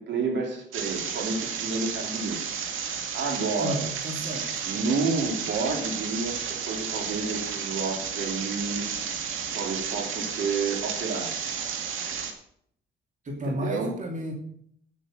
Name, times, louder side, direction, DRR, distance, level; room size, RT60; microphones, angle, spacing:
voice 1, 0.0-2.5 3.1-3.9 4.6-8.9 9.5-11.6 13.5-14.0, right 4 dB, 70° right, 2 dB, 3.5 m, -30 dB
sound 1, 0.7-12.3, right 7 dB, 90° right, 2.2 m, -32 dB
voice 2, 3.6-5.1 13.2-14.3, equal, 40° right, 1 dB, 2.7 m, -33 dB
9.3 x 8.6 x 6.4 m, 0.63 s
cardioid pair, 90°, 20 cm